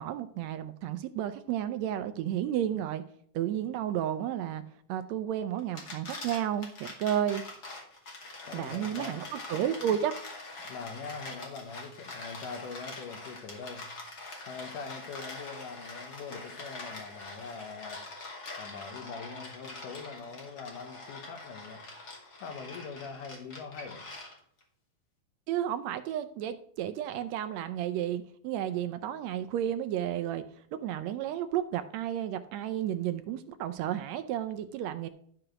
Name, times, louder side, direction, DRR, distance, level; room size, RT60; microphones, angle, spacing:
voice 1, 0.0-3.0 3.3-4.6 4.9-7.4 8.5-10.1 25.5-30.4 30.7-35.1, right 10 dB, 80° right, 10 dB, 1.5 m, -32 dB
sound 1, 5.6-24.6, left 2 dB, 35° left, 2.4 m, -44 dB
voice 2, 8.4-9.3 10.6-13.9 14.4-18.1 18.6-21.9 22.4-24.0, left 5 dB, 85° left, 6 dB, 2.7 m, -43 dB
12.5 x 4.9 x 6.1 m, 0.64 s
omnidirectional pair, 3.6 m